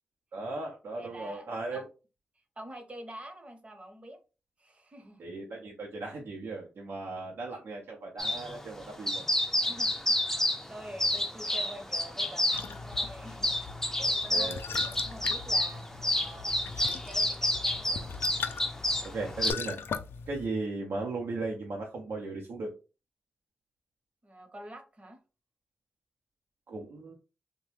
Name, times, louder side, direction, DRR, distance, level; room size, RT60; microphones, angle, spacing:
voice 1, 0.3-1.9 5.2-9.3 14.0-14.6 19.0-19.8 20.3-22.7 26.7-27.1, right 3 dB, 80° right, 0.6 m, -37 dB
voice 2, 0.9-1.8 2.6-4.2 4.6-5.3 9.6-13.5 14.1-16.5 16.8-18.0 24.2-25.2, right 1 dB, 35° right, 0.8 m, -47 dB
sound 1, 8.2-19.5, left 1 dB, 10° left, 0.5 m, -30 dB
sound 2, 12.5-20.5, left 5 dB, 75° left, 0.3 m, -40 dB
2.9 x 2.1 x 3.2 m
cardioid pair, 55°, 4 cm